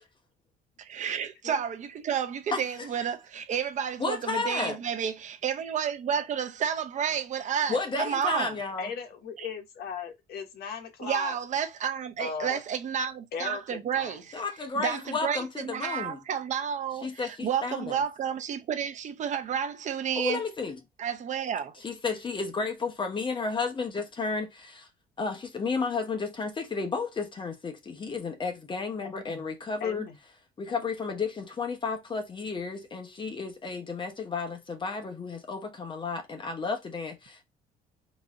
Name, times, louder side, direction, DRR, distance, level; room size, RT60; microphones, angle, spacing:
voice 1, 0.8-8.5 9.4-9.5 11.0-14.4 14.7-20.4 21.0-21.7, right 8 dB, 45° right, 0.7 m, -31 dB
voice 2, 4.0-4.8 7.7-8.9 14.3-16.2 17.0-18.0 20.2-20.8 21.8-24.9 25.2-30.1 30.6-37.4, left 4 dB, 30° left, 1.1 m, -32 dB
voice 3, 8.8-11.4 12.2-12.6 13.3-14.2 29.8-30.2, left 5 dB, 70° left, 1.3 m, -37 dB
4.1 x 2.8 x 3.6 m
cardioid pair, 120°, 17 cm